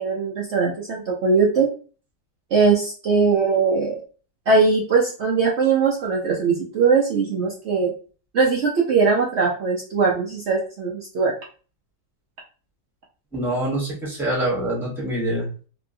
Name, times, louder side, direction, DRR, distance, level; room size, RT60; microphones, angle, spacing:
voice 1, 0.0-1.7 2.5-4.0 4.5-7.9 8.3-11.3, right 4 dB, 85° right, -3 dB, 0.6 m, -20 dB
voice 2, 13.3-15.5, right 1 dB, ahead, -4 dB, 0.8 m, -25 dB
2.9 x 2.7 x 2.6 m, 0.38 s
omnidirectional pair, 1.9 m